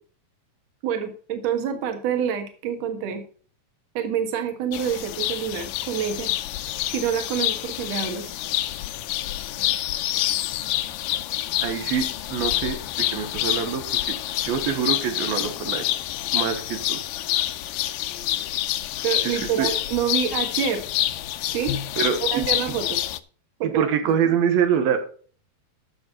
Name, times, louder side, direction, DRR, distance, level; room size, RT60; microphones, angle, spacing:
voice 1, 0.8-3.2 3.9-6.3 6.9-8.3 19.0-20.9 21.5-21.7 22.2-23.0 23.6-24.4, right 8 dB, 55° right, 6 dB, 2.5 m, -27 dB
sound 1, 4.7-23.2, left 14 dB, 80° left, 2.1 m, -27 dB
voice 2, 11.6-12.8 13.1-14.2 14.4-15.8 16.3-17.0 19.2-19.3 19.6-19.7 22.0-22.4 23.6-25.0, right 8 dB, 85° right, 7 dB, 3.1 m, -25 dB
13.0 x 6.9 x 4.2 m, 0.43 s
omnidirectional pair, 4.1 m